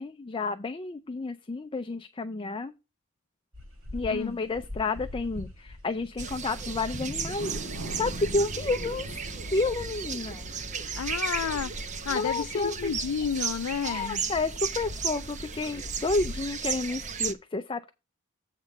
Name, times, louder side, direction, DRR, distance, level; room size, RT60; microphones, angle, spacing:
voice 1, 0.0-2.7 3.9-7.5 8.0-10.4 12.1-12.9 13.8-17.9, left 3 dB, 25° left, 0.4 m, -30 dB
sound 1, 3.5-16.5, left 1 dB, 60° right, 4.6 m, -45 dB
voice 2, 4.0-4.4 11.0-14.2, left 7 dB, 90° left, 0.4 m, -31 dB
sound 2, 6.2-17.3, right 5 dB, 35° right, 0.7 m, -34 dB
sound 3, 7.2-13.7 14.2-14.3, right 2 dB, 90° right, 3.8 m, -44 dB
8.1 x 3.7 x 6.7 m
head